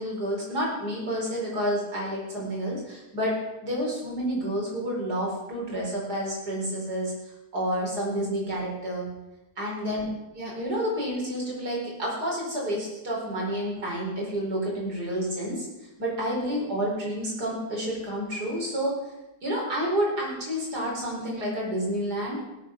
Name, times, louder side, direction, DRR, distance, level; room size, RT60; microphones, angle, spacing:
voice 1, 0.0-7.1 7.5-9.1 9.6-10.1 10.4-15.7 16.0-19.0 19.4-22.4, equal, 70° right, -3 dB, 5.2 m, -29 dB
17.5 x 8.3 x 6.0 m, 0.94 s
omnidirectional pair, 1.8 m